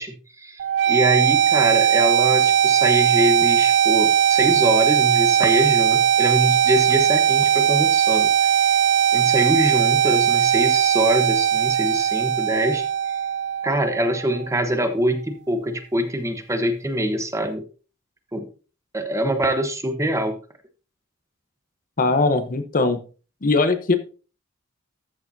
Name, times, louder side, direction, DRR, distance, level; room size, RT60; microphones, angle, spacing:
voice 1, 0.0-8.7 9.1-12.8 13.6-17.6 18.3-18.5 18.9-20.4, equal, 15° right, 7 dB, 1.0 m, -24 dB
sound 1, 0.6-14.6, right 9 dB, 55° right, 0.4 m, -19 dB
voice 2, 22.0-23.0 23.4-23.9, left 3 dB, 40° left, 9 dB, 0.9 m, -20 dB
13.5 x 6.8 x 2.7 m, 0.36 s
head